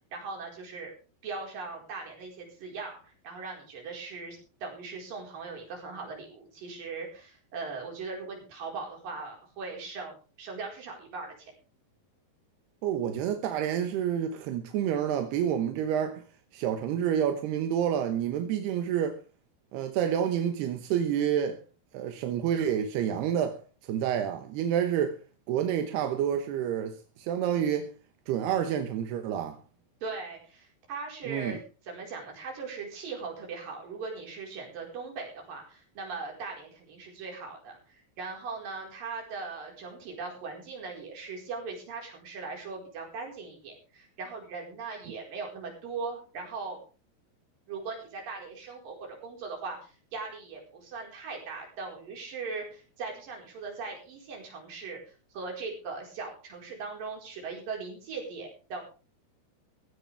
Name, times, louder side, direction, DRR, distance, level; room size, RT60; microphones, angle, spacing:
voice 1, 0.1-0.9 1.2-11.5 30.0-46.8 47.7-55.0 55.3-58.8, right 4 dB, 60° right, 6.2 m, -39 dB
voice 2, 12.8-16.2 16.5-19.2 19.7-21.6 21.9-25.2 25.5-27.9 28.3-29.6 31.2-31.6, right 9 dB, 85° right, 3.2 m, -29 dB
16.5 x 15.5 x 3.5 m
omnidirectional pair, 4.5 m